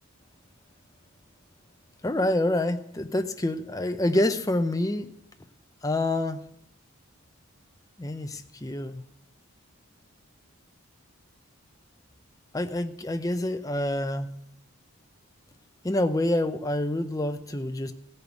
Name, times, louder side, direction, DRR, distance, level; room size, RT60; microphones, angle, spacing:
voice 1, 2.0-5.1 5.8-6.4 8.0-9.0 12.5-14.3 15.8-17.9, left 1 dB, 15° left, 7 dB, 0.6 m, -27 dB
15.5 x 5.5 x 8.1 m, 0.74 s
head